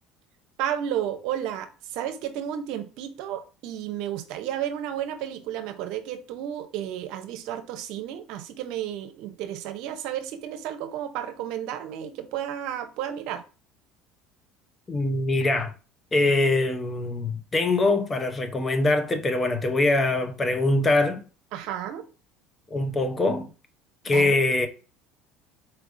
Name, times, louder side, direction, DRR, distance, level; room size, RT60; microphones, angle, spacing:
voice 1, 0.6-13.4 21.5-22.0 24.0-24.4, right 10 dB, 70° right, 0.7 m, -32 dB
voice 2, 14.9-15.7 16.1-21.2 22.7-23.5 24.0-24.7, left 2 dB, 25° left, 0.8 m, -23 dB
4.4 x 3.4 x 2.6 m
supercardioid pair, 90°, 0 cm